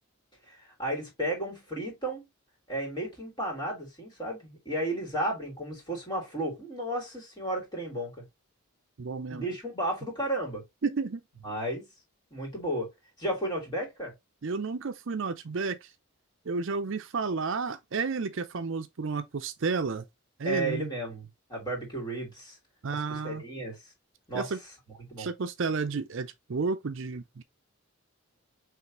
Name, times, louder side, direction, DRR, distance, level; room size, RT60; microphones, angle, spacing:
voice 1, 0.5-2.2 2.7-8.2 9.3-10.6 11.4-11.9 12.3-12.9 13.2-14.1 20.4-22.6 22.9-23.9 24.3-24.6 25.1-25.3, right 1 dB, 20° left, 2.6 m, -33 dB
voice 2, 9.0-9.5 10.8-11.2 14.4-15.9 16.5-20.0 20.4-20.9 22.8-23.4 24.3-24.6 25.2-27.4, right 4 dB, 60° right, 0.5 m, -31 dB
5.6 x 3.2 x 3.0 m
head